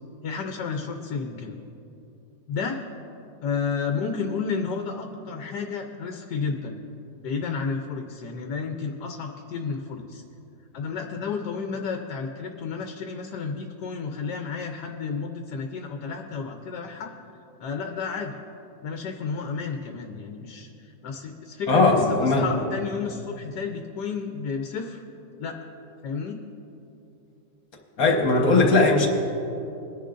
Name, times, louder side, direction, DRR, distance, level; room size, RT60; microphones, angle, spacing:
voice 1, 0.2-1.6 2.5-2.8 3.4-6.8 7.2-10.2 10.7-17.1 17.6-18.4 18.8-25.0 25.4-25.6 26.0-26.4, left 5 dB, 85° left, 4 dB, 1.4 m, -31 dB
voice 2, 21.7-22.5 28.0-29.1, left 3 dB, 60° left, 2 dB, 1.7 m, -19 dB
22.5 x 10.5 x 2.6 m, 2.9 s
omnidirectional pair, 1.7 m